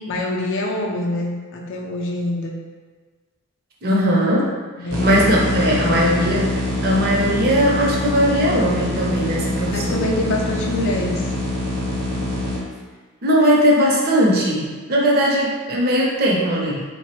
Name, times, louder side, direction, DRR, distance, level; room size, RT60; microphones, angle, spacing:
voice 1, 0.1-2.5 4.8-5.3 9.7-11.3, left 1 dB, 55° left, -1 dB, 0.4 m, -25 dB
voice 2, 3.8-4.5 5.0-6.6 6.8-10.0 13.2-16.8, equal, 45° right, -3 dB, 0.5 m, -19 dB
sound 1, 4.9-12.6, left 1 dB, 80° right, 0.8 m, -24 dB
3.4 x 2.0 x 2.8 m, 1.4 s
head